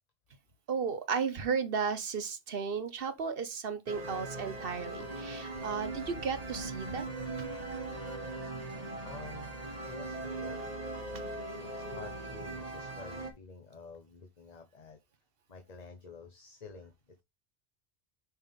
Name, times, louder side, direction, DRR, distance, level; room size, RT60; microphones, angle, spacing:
voice 1, 0.7-7.1, right 6 dB, 60° right, 1.1 m, -34 dB
sound 1, 3.9-13.3, right 2 dB, 35° right, 1.3 m, -40 dB
sound 2, 5.5-9.7, left 6 dB, 75° left, 1.1 m, -55 dB
voice 2, 9.0-10.6 11.6-15.0 15.5-17.2, left 4 dB, 40° left, 1.0 m, -50 dB
5.9 x 5.2 x 3.6 m
omnidirectional pair, 1.1 m